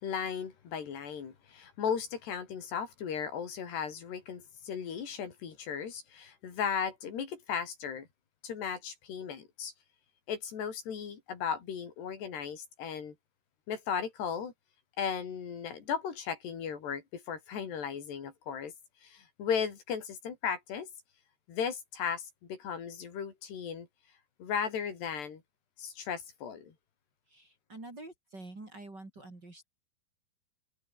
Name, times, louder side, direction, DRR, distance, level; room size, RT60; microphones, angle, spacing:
voice 1, 0.0-8.1 8.4-9.7 10.3-13.2 13.7-14.5 15.0-18.7 19.0-20.9 21.5-23.9 24.4-25.4 25.8-26.7, left 7 dB, 80° left, 5.8 m, -36 dB
voice 2, 27.3-29.7, right 2 dB, 25° right, 5.0 m, -47 dB
omnidirectional pair, 4.7 m